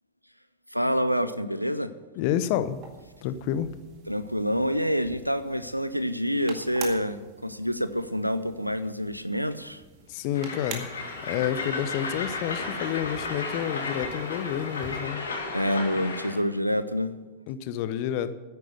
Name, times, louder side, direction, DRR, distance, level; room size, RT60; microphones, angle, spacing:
voice 1, 0.7-1.9 4.1-9.8 15.5-17.2, equal, 90° right, 13 dB, 0.6 m, -27 dB
voice 2, 2.2-2.8 3.2-3.7 10.1-10.9 11.2-15.3 17.5-18.3, left 10 dB, 45° left, 13 dB, 0.8 m, -29 dB
sound 1, 2.4-15.1, right 5 dB, 40° right, 2.0 m, -47 dB
Train, 10.3-16.4, left 3 dB, 70° left, 2.2 m, -34 dB
10.0 x 9.3 x 7.9 m, 1.2 s
figure-of-eight pair, 90°, 0 cm